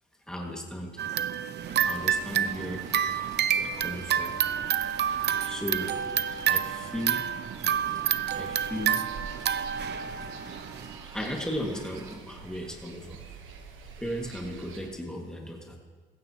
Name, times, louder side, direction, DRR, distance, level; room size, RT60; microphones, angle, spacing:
voice 1, 0.3-1.0 1.7-2.9 3.5-4.3 5.4-6.0 6.4-7.2 8.3-9.1 9.9-10.1 11.1-13.2 14.0-15.8, equal, 5° left, -1 dB, 2.3 m, -36 dB
sound 1, 1.0-11.0, right 9 dB, 60° right, 0.6 m, -29 dB
sound 2, 1.6-14.9, right 5 dB, 90° right, 1.4 m, -47 dB
sound 3, 2.0-12.2, right 2 dB, 15° right, 1.3 m, -51 dB
16.0 x 15.0 x 3.1 m, 1.5 s
cardioid pair, 90°, 20 cm